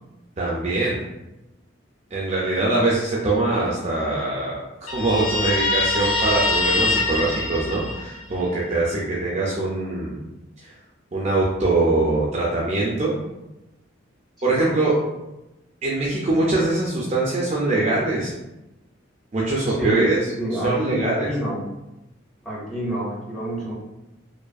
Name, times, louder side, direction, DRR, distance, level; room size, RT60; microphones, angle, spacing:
voice 1, 0.4-1.0 2.1-4.6 4.9-10.2 10.6-10.7 11.1-13.1 14.4-15.0 15.8-18.3 19.3-20.2 20.6-21.3, right 2 dB, 30° right, -5 dB, 0.3 m, -22 dB
Guitar, 4.9-8.4, left 2 dB, 65° left, 0.5 m, -23 dB
voice 2, 19.7-20.1 20.4-21.6 22.4-23.7, right 1 dB, ahead, -7 dB, 0.7 m, -28 dB
2.5 x 2.4 x 2.3 m, 0.96 s
head